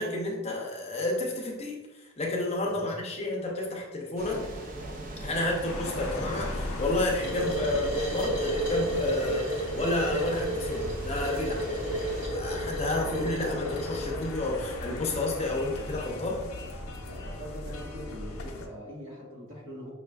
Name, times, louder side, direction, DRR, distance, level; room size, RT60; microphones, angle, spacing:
voice 1, 0.0-4.5 5.2-11.7 12.3-16.4, left 2 dB, 30° left, -1 dB, 0.6 m, -31 dB
sound 1, 4.2-12.3, right 1 dB, 40° right, 0.4 m, -42 dB
sound 2, 5.6-18.7, left 2 dB, 85° left, 0.5 m, -38 dB
sound 3, 7.2-14.3, right 1 dB, 10° right, 1.1 m, -32 dB
voice 2, 17.0-19.9, equal, 70° right, -4 dB, 1.3 m, -43 dB
5.5 x 2.4 x 2.3 m, 1.1 s
head